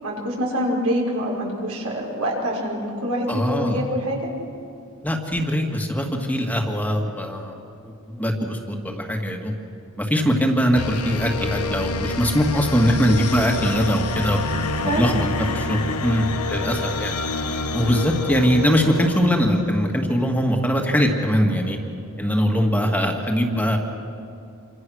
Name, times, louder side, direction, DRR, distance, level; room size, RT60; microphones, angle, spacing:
voice 1, 0.0-4.3 14.8-15.1, equal, 80° right, -2 dB, 5.9 m, -25 dB
voice 2, 3.3-3.8 5.0-7.6 7.8-9.6 10.0-14.4 14.8-17.1 17.7-21.8 22.2-23.8, equal, 5° left, 1 dB, 2.1 m, -21 dB
sound 1, 10.8-20.2, left 3 dB, 85° left, 1.3 m, -28 dB
28.0 x 25.5 x 6.4 m, 2.5 s
head